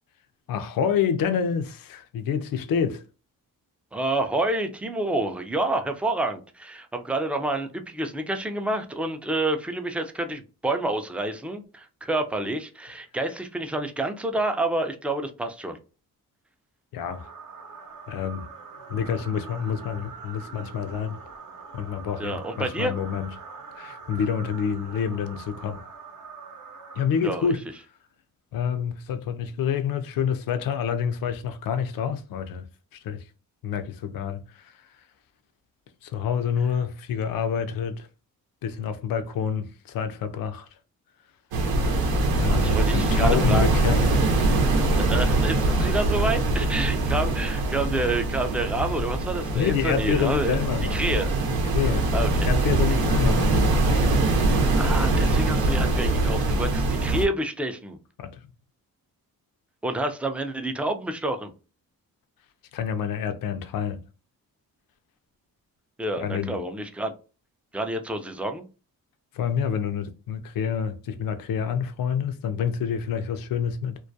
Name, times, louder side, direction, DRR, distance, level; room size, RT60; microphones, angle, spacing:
voice 1, 0.5-3.0 16.9-17.3 18.1-18.5 18.9-21.2 21.7-23.3 23.8-25.8 27.0-27.6 28.5-32.7 32.9-33.2 33.6-34.9 36.0-38.1 38.6-40.7 42.4-44.3 49.5-51.0 51.7-52.1 52.4-53.6 58.2-58.5 62.7-64.0 66.2-66.6 69.3-74.0, left 7 dB, 70° left, 0.5 m, -28 dB
voice 2, 3.9-15.8 22.2-22.9 27.2-27.5 42.5-43.7 45.0-50.6 50.9-51.3 52.1-52.3 54.8-58.0 59.8-61.5 66.0-67.1 67.7-68.7, right 2 dB, 5° right, 0.3 m, -28 dB
sound 1, 17.0-27.7, right 4 dB, 55° right, 0.7 m, -43 dB
sound 2, 41.5-57.3, right 2 dB, 85° right, 0.7 m, -23 dB
2.3 x 2.2 x 2.6 m
cardioid pair, 80°, 36 cm